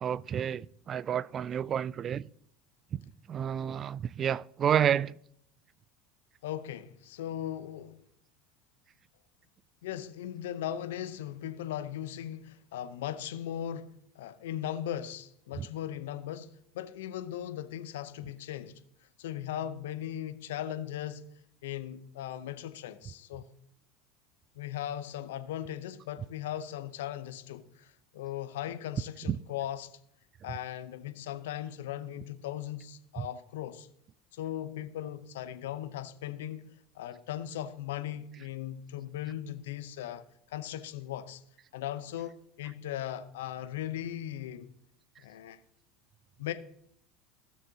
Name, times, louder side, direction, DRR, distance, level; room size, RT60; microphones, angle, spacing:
voice 1, 0.0-2.3 2.9-3.0 3.3-5.2 15.6-15.7 29.3-29.4 33.2-33.3, right 9 dB, 40° right, 0.3 m, -30 dB
voice 2, 6.4-8.0 9.8-18.8 19.2-21.2 21.6-23.5 24.6-29.9 30.4-33.9 34.3-41.4 41.7-44.7 45.2-45.6 46.4-46.5, left 11 dB, 75° left, 0.7 m, -38 dB
16.0 x 6.5 x 2.8 m
hypercardioid pair, 80°, 0 cm